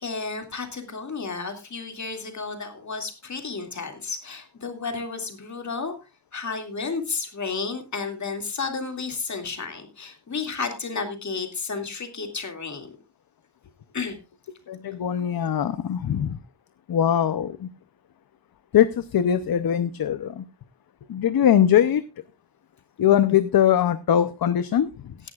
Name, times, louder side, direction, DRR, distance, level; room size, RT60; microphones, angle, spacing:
voice 1, 0.0-5.9 6.3-12.9 13.9-14.2, left 4 dB, 45° left, 5 dB, 2.3 m, -32 dB
voice 2, 14.7-16.4 16.9-17.7 18.7-20.5 21.1-22.0 23.0-25.1, left 10 dB, 60° left, 12 dB, 0.7 m, -21 dB
17.5 x 11.0 x 2.4 m, 0.27 s
wide cardioid pair, 155°, 41 cm